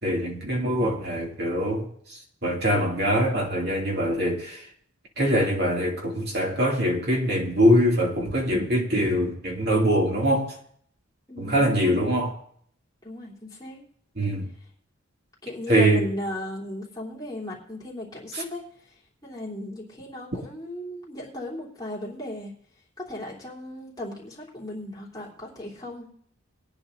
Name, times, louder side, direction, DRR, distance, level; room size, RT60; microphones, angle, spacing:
voice 1, 0.0-4.7 5.2-10.5 11.4-12.3 14.2-14.5 15.7-16.1 18.3-18.4, equal, 50° right, 2.5 m, -23 dB
voice 2, 11.3-12.1 13.0-13.9 15.4-22.5 23.0-26.1, left 1 dB, 20° left, 3.3 m, -36 dB
22.0 x 9.6 x 2.7 m
head